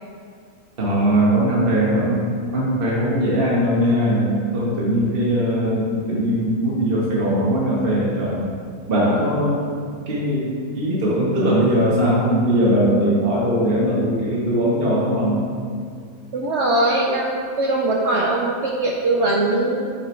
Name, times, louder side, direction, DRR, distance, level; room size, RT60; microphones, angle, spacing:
voice 1, 0.8-2.3 2.5-8.5 8.9-9.7 10.1-15.4, equal, 40° right, -5 dB, 1.3 m, -20 dB
voice 2, 16.3-19.9, right 2 dB, 65° right, -2 dB, 0.7 m, -21 dB
6.1 x 4.7 x 4.4 m, 2.1 s
omnidirectional pair, 1.7 m